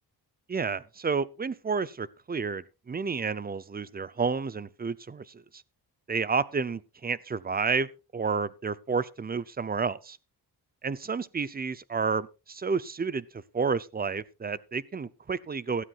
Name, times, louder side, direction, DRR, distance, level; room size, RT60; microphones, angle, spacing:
voice 1, 0.5-5.2 6.1-7.9 8.1-10.2 10.8-13.2 13.5-15.8, right 5 dB, 25° right, 0.6 m, -30 dB
16.5 x 13.0 x 2.5 m
wide cardioid pair, 120°, 38 cm